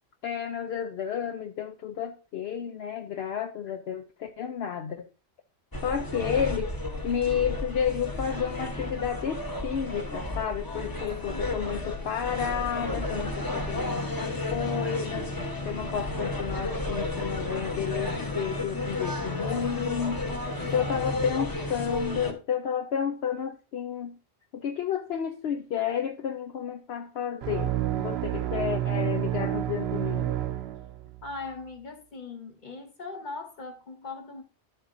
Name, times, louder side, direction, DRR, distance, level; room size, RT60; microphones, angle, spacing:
voice 1, 0.2-5.1 5.8-6.7 7.0-15.3 15.6-20.2 20.7-24.2 24.5-30.3, left 8 dB, 70° left, 0.9 m, -31 dB
sound 1, 5.7-22.3, left 2 dB, 20° left, 0.9 m, -32 dB
voice 2, 10.6-11.7 20.3-21.3 31.2-34.4, left 3 dB, 45° left, 1.4 m, -41 dB
sound 2, 27.4-31.3, right 12 dB, 70° right, 0.9 m, -29 dB
11.0 x 7.9 x 2.6 m
omnidirectional pair, 1.2 m